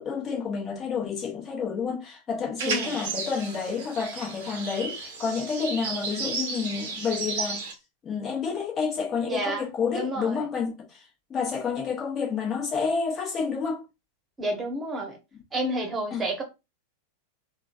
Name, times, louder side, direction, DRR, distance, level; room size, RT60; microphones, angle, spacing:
voice 1, 0.0-7.6 8.0-13.8 16.1-16.3, left 5 dB, 25° left, 1.3 m, -29 dB
voice 2, 2.6-3.0 9.2-10.4 14.4-15.2 15.5-16.4, right 1 dB, 15° right, 1.2 m, -30 dB
sound 1, 2.6-7.7, right 4 dB, 55° right, 0.8 m, -33 dB
3.6 x 2.4 x 2.6 m
figure-of-eight pair, 90°, 0 cm